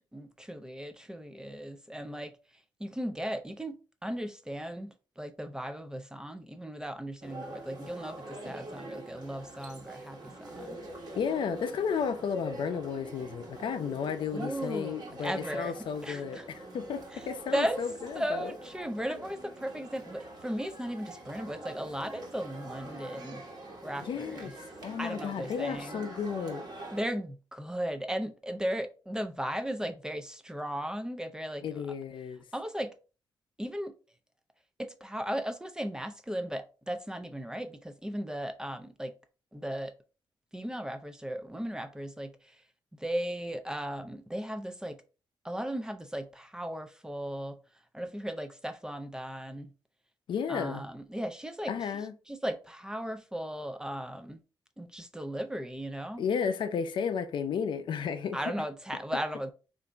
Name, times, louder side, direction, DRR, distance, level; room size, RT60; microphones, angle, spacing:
voice 1, 0.1-2.3 2.8-10.8 14.3-16.4 17.1-17.2 17.5-17.8 18.2-23.4 23.8-24.5 25.0-26.0 26.9-31.6 32.5-32.9 33.6-33.9 34.8-39.1 39.5-39.9 40.5-42.3 43.0-45.0 45.4-47.6 47.9-49.7 50.5-51.7 52.3-54.4 54.8-56.2 58.3-59.5, equal, 10° right, 0.4 m, -36 dB
sound 1, 7.2-27.0, right 2 dB, 55° right, 1.1 m, -45 dB
voice 2, 11.2-18.5 24.0-24.5 24.8-26.7 31.6-32.4 50.3-50.8 51.7-52.1 56.2-58.4, left 6 dB, 75° left, 0.5 m, -33 dB
4.0 x 2.5 x 3.3 m
wide cardioid pair, 125°, 8 cm